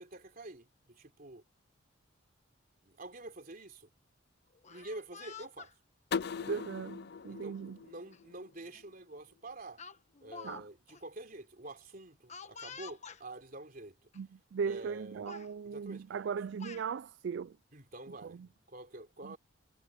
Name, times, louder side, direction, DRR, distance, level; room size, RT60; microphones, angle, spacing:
voice 1, 0.0-1.4 2.8-3.9 4.7-5.7 6.4-6.6 7.3-9.8 10.2-14.1 14.6-15.3 15.6-16.1 17.7-18.4 18.7-19.4, right 2 dB, 45° right, 3.5 m, -48 dB
Speech, 4.5-5.7 6.6-6.9 8.1-8.2 8.6-8.8 9.8-10.6 10.9-11.0 12.3-13.2 14.1-14.2 14.6-15.0 15.3-15.5 16.3-16.9, left 6 dB, 35° left, 1.3 m, -49 dB
sound 1, 6.1-8.9, left 6 dB, 55° left, 0.4 m, -40 dB
voice 2, 6.5-7.8 10.4-10.7 14.2-17.6 18.2-18.5 19.2-19.4, right 6 dB, 60° right, 0.3 m, -38 dB
head